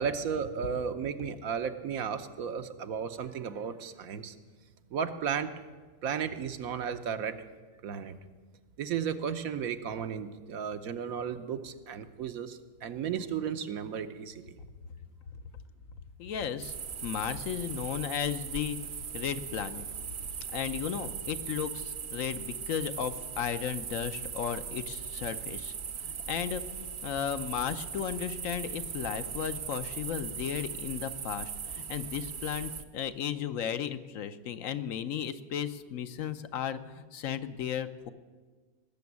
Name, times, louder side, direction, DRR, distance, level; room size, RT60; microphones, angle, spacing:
voice 1, 0.0-4.3 4.9-5.5 6.0-7.4 7.8-8.2 8.8-14.5, right 7 dB, 70° right, 9 dB, 1.2 m, -34 dB
voice 2, 16.2-16.7 17.0-18.8 19.1-19.8 20.5-25.7 26.0-38.1, left 9 dB, 65° left, 11 dB, 1.1 m, -35 dB
sound 1, 16.6-32.8, right 7 dB, 55° right, 1.0 m, -39 dB
19.0 x 7.0 x 9.5 m, 1.4 s
omnidirectional pair, 1.5 m